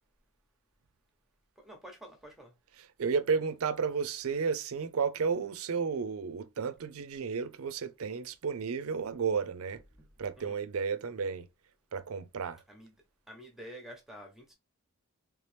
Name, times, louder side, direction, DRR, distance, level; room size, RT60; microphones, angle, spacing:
voice 1, 1.6-2.5 9.7-10.1 10.4-10.6 12.7-13.0 13.3-14.5, equal, ahead, 0.7 m, -49 dB
voice 2, 2.7-9.8 10.2-11.5 11.9-12.6, right 5 dB, 90° right, 0.5 m, -32 dB
3.4 x 3.0 x 3.3 m
head